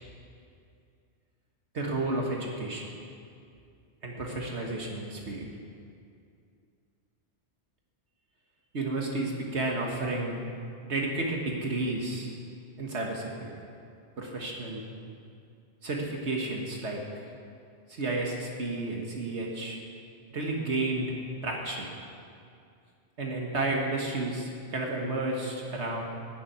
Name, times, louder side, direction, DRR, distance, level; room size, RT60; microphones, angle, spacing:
voice 1, 1.7-2.9 4.0-5.5 8.7-10.4 10.9-12.3 12.8-13.5 14.2-14.8 15.8-17.0 17.9-19.8 20.3-21.1 21.4-21.9 23.2-26.0, right 2 dB, 70° right, -1 dB, 1.8 m, -31 dB
15.0 x 7.4 x 9.3 m, 2.4 s
omnidirectional pair, 1.2 m